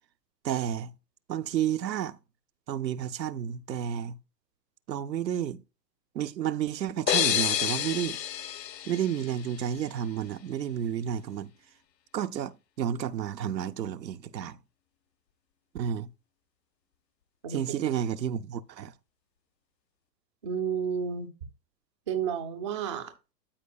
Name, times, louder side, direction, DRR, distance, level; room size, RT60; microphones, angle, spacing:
voice 1, 0.4-0.9 1.3-2.2 2.7-4.2 4.9-5.6 6.1-8.2 8.9-11.5 12.1-14.6 15.7-16.1 17.5-18.9, right 9 dB, 85° right, 0.6 m, -31 dB
sound 1, 7.1-9.8, left 11 dB, 75° left, 0.8 m, -29 dB
voice 2, 17.4-17.8 20.4-21.3 22.1-23.1, right 7 dB, 20° right, 0.3 m, -31 dB
12.5 x 4.6 x 2.3 m
hypercardioid pair, 110°, 50 cm